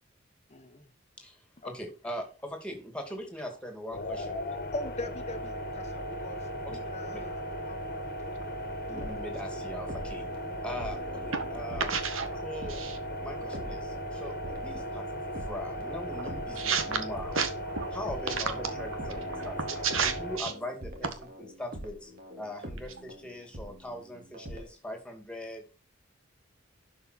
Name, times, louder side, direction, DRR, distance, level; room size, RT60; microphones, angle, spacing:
voice 1, 0.5-0.9 1.6-1.7 4.7-6.4 6.7-8.6 8.9-9.3 10.7-10.9, left 1 dB, 35° left, 9 dB, 1.2 m, -42 dB
voice 2, 1.2-4.4 5.0-5.1 6.6-6.8 7.1-7.3 8.9-10.3 10.6-11.9 12.4-12.8 13.2-17.3 17.9-22.1 22.4-25.6, left 1 dB, 5° left, 4 dB, 2.5 m, -41 dB
sound 1, 3.9-20.4, equal, 50° left, 1.6 m, -37 dB
sound 2, 8.6-12.2 12.6-17.5 18.0-24.7, equal, 45° right, 2.8 m, -45 dB
voice 3, 11.9-12.4 12.7-13.0 16.2-17.0 17.3-17.9 18.3-18.7 19.1-20.5, right 6 dB, 85° right, 8 dB, 1.8 m, -32 dB
11.5 x 5.5 x 4.5 m, 0.33 s
head